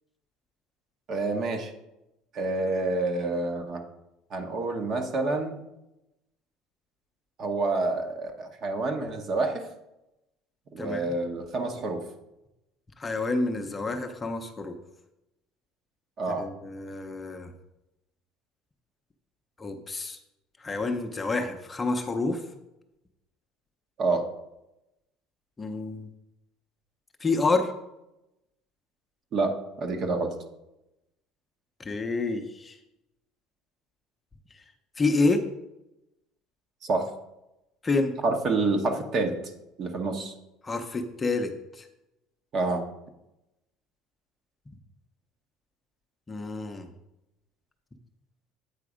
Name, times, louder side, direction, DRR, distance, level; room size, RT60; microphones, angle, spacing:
voice 1, 1.1-1.7 2.3-3.8 4.3-5.6 7.4-9.7 10.7-12.0 16.2-16.5 24.0-24.2 29.3-30.3 36.8-37.0 38.2-39.3 39.8-40.3 42.5-42.8, right 3 dB, 45° right, 4 dB, 1.1 m, -28 dB
voice 2, 10.8-11.1 13.0-14.7 16.4-17.5 19.6-20.2 20.6-22.4 25.6-26.1 27.2-27.7 31.8-32.7 35.0-35.4 37.8-38.1 40.6-41.5 41.8-41.9 46.3-46.9, left 3 dB, 20° left, 4 dB, 0.7 m, -28 dB
8.6 x 4.1 x 5.0 m, 0.91 s
cardioid pair, 120°, 0 cm